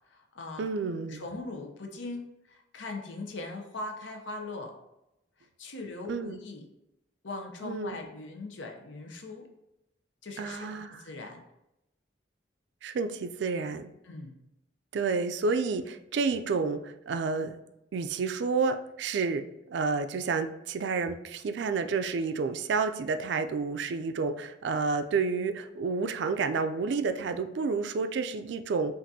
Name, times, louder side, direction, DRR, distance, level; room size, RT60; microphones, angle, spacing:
voice 1, 0.1-0.6 1.1-2.2 2.5-4.7 5.6-6.6 7.2-9.5 10.2-10.7 11.0-11.4 14.0-14.4, left 2 dB, 85° left, 3 dB, 0.7 m, -40 dB
voice 2, 0.6-1.2 6.1-6.4 7.6-8.0 10.4-11.0 12.8-13.9 14.9-17.6 17.9-28.9, right 4 dB, 70° right, 8 dB, 0.3 m, -30 dB
5.8 x 2.5 x 2.7 m, 0.89 s
head